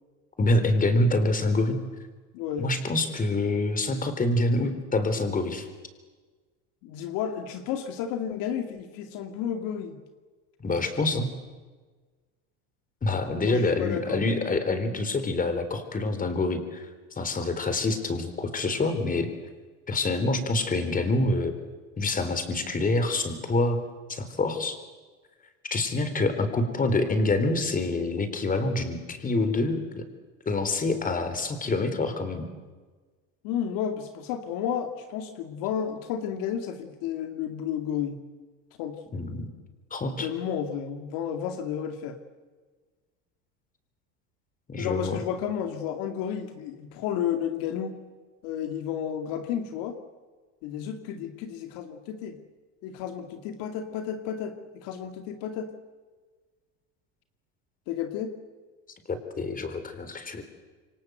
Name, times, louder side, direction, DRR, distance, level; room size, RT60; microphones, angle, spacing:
voice 1, 0.4-1.8 2.6-5.7 10.6-11.3 13.0-16.9 17.1-19.3 19.9-21.6 22.0-23.8 24.1-24.8 25.7-30.0 30.5-32.5 39.1-39.5 39.9-40.3 44.7-45.2 59.1-60.4, left 2 dB, 25° left, 9 dB, 4.0 m, -26 dB
voice 2, 2.3-2.7 6.8-10.0 13.4-14.2 33.4-38.2 38.8-39.0 40.2-42.2 44.8-48.0 48.4-50.0 50.6-52.4 52.8-55.7 57.9-58.4, left 8 dB, 70° left, 6 dB, 2.5 m, -32 dB
28.0 x 24.0 x 8.0 m, 1.4 s
supercardioid pair, 110°, 35 cm